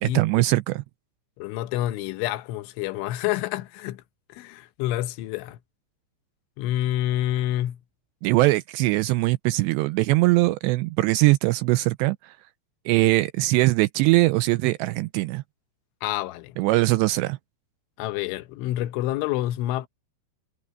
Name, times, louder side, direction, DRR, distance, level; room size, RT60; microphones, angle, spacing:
voice 1, 0.0-0.8 8.2-12.4 12.9-15.4 16.6-17.4, right 20 dB, 85° right, 2.5 m, -21 dB
voice 2, 1.4-4.0 4.3-5.6 6.6-7.8 16.0-16.6 18.0-19.9, left 14 dB, 85° left, 3.4 m, -28 dB
omnidirectional pair, 5.4 m